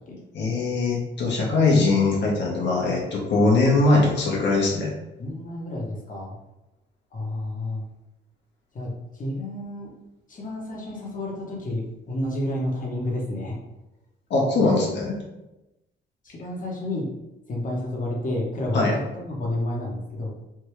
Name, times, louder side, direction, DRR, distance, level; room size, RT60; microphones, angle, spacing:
voice 1, 0.3-4.9 14.3-15.2 18.7-19.0, left 3 dB, 65° left, -3 dB, 1.0 m, -21 dB
voice 2, 5.2-6.3 7.1-7.8 8.7-9.9 10.3-13.5 16.2-17.1 17.5-20.3, left 1 dB, 40° left, -2 dB, 1.0 m, -30 dB
3.4 x 2.3 x 3.1 m, 0.96 s
cardioid pair, 90°, 20 cm